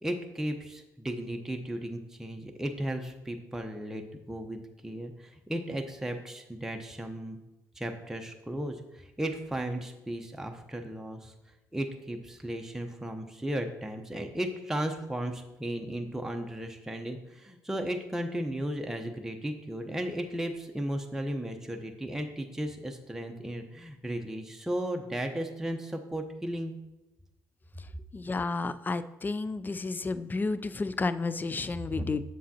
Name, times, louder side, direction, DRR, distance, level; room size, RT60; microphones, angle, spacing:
voice 1, 0.0-7.4 7.8-11.3 11.7-26.7 31.9-32.1, right 1 dB, 5° right, 3 dB, 0.9 m, -35 dB
voice 2, 28.1-32.2, left 3 dB, 25° left, 13 dB, 0.4 m, -31 dB
7.3 x 7.0 x 2.9 m, 0.97 s
hypercardioid pair, 50°, 8 cm